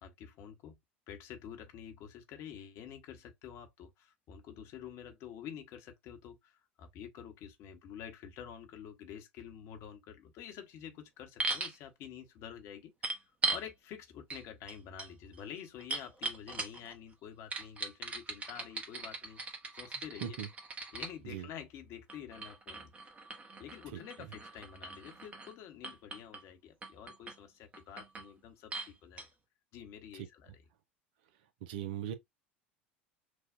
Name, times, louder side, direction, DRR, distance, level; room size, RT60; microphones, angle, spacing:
voice 1, 0.0-0.8 1.1-12.9 13.2-19.4 19.7-20.4 20.9-23.1 23.6-29.3 29.7-30.6, left 9 dB, 50° left, 1.1 m, -48 dB
sound 1, 11.4-11.8 13.0-13.7 14.3-14.4 14.7-16.9 17.5-21.1 22.1-25.5 25.8-26.4 26.8-27.4 27.7-28.3 28.7-28.9 29.2-29.3, right 3 dB, 20° right, 1.0 m, -39 dB
voice 2, 31.6-32.1, right 10 dB, 60° right, 0.7 m, -39 dB
6.3 x 2.4 x 2.5 m
figure-of-eight pair, 75°, 6 cm